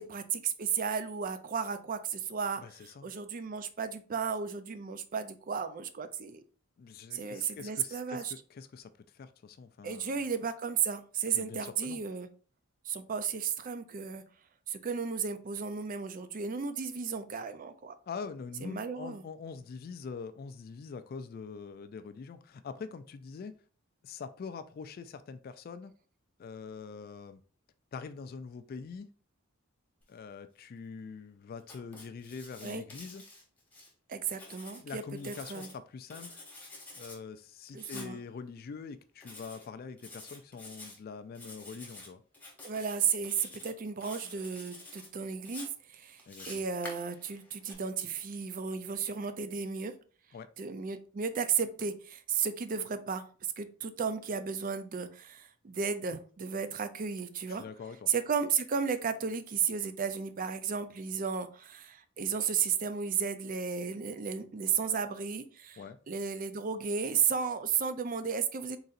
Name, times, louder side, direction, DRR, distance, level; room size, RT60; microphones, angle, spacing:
voice 1, 0.0-2.6 3.0-6.4 7.1-8.3 9.8-12.3 12.9-14.2 14.7-17.9 18.6-19.2 32.6-32.8 34.1-35.7 37.7-38.2 42.6-49.9 50.6-53.3 53.6-57.6 58.1-65.8 66.1-68.8, right 6 dB, 40° right, 0.4 m, -34 dB
voice 2, 2.6-3.1 6.8-10.2 11.3-12.0 18.1-23.5 24.0-25.9 26.4-27.4 27.9-29.1 30.1-33.2 34.8-36.4 36.9-42.2 46.3-46.6 50.3-50.5 57.5-58.1 65.8-66.0, left 5 dB, 45° left, 0.3 m, -44 dB
Writing, 31.6-33.9 34.3-35.8 36.1-37.2 37.8-38.1 39.2-39.7 40.0-41.0 41.3-42.1 42.3-42.9 43.2-43.7 44.0-45.1 45.5-47.7, left 2 dB, 10° left, 1.1 m, -49 dB
4.0 x 3.9 x 2.5 m
head